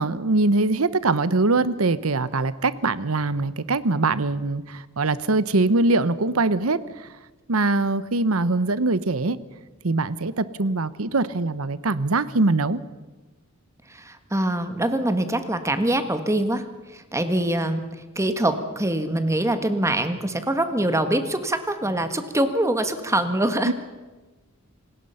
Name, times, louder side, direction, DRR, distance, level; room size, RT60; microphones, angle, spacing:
voice 1, 0.0-7.1 7.5-9.4 9.8-12.8 23.6-23.7, right 3 dB, 75° right, 15 dB, 1.0 m, -22 dB
voice 2, 13.9-16.6 16.9-17.8 18.1-23.7, right 1 dB, 15° right, 9 dB, 1.5 m, -24 dB
27.5 x 19.0 x 5.7 m, 1.2 s
head